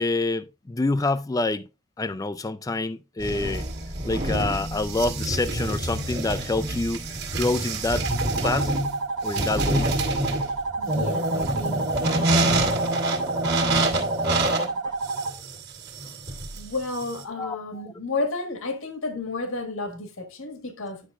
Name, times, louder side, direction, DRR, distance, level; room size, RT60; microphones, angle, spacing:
voice 1, 0.0-1.7 2.0-3.7 4.0-8.1 8.4-8.7 9.2-9.9 17.4-17.6, left 2 dB, 15° left, 0.3 m, -27 dB
sound 1, 3.2-17.2, right 1 dB, 50° right, 1.6 m, -27 dB
sound 2, 8.0-15.3, right 3 dB, 90° right, 1.1 m, -30 dB
voice 2, 10.8-12.8 16.5-21.0, left 3 dB, 70° left, 1.6 m, -32 dB
10.0 x 6.0 x 2.4 m
head